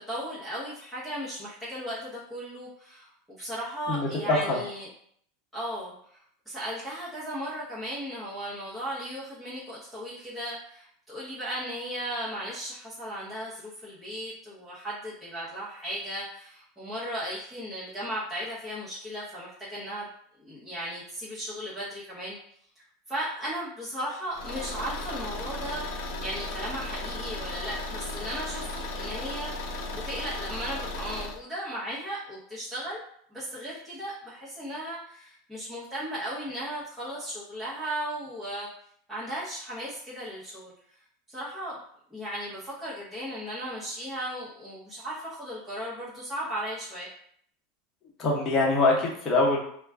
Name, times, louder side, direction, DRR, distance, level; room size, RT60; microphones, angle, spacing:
voice 1, 0.0-3.1 3.4-4.9 5.5-6.2 6.5-20.1 20.4-22.4 22.8-33.0 33.3-38.7 39.1-40.7 41.3-41.8 42.1-47.1, equal, 5° right, -10 dB, 0.9 m, -36 dB
voice 2, 3.9-4.6 48.2-49.6, left 2 dB, 30° left, -3 dB, 1.0 m, -24 dB
Car / Engine, 24.3-31.4, left 2 dB, 60° left, 0.4 m, -35 dB
2.4 x 2.2 x 3.4 m, 0.64 s
supercardioid pair, 120°, 0 cm